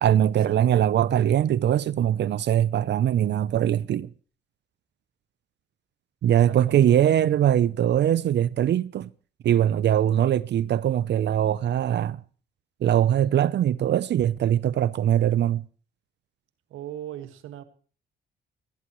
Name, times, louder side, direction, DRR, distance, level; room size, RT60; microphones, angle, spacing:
voice 1, 0.0-4.1 6.2-9.1 9.4-12.2 12.8-15.6, right 10 dB, 60° right, 0.6 m, -22 dB
voice 2, 6.4-7.0 16.7-17.6, right 11 dB, 90° right, 1.9 m, -38 dB
20.5 x 16.5 x 3.1 m
cardioid pair, 90°, 20 cm